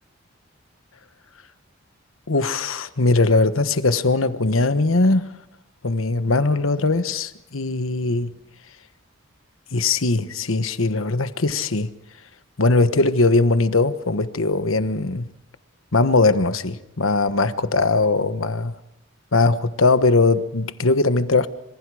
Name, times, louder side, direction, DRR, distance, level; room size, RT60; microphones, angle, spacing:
voice 1, 2.3-5.4 5.8-8.3 9.7-11.9 12.6-15.3 15.9-18.7 19.3-21.5, left 3 dB, 90° left, 1.3 m, -20 dB
26.5 x 26.0 x 5.0 m
head